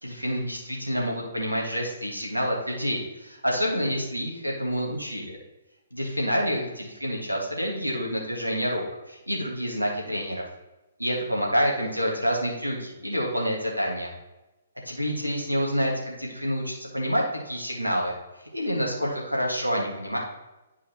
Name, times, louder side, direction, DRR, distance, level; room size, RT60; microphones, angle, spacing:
voice 1, 0.0-5.4 5.9-10.4 11.0-14.1 14.9-18.1 18.5-20.2, equal, 90° right, -1 dB, 1.8 m, -28 dB
11.0 x 4.8 x 3.0 m, 1.0 s
figure-of-eight pair, 125°, 0 cm